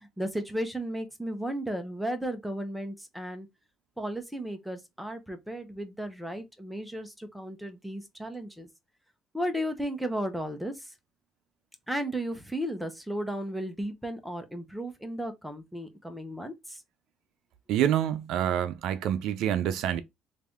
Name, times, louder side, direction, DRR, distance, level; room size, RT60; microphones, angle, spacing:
voice 1, 0.0-3.5 4.0-8.7 9.3-10.9 11.9-16.8, equal, ahead, 0.8 m, -34 dB
voice 2, 17.7-20.0, right 10 dB, 75° right, 0.6 m, -27 dB
3.3 x 2.7 x 3.5 m
cardioid pair, 100°, 0 cm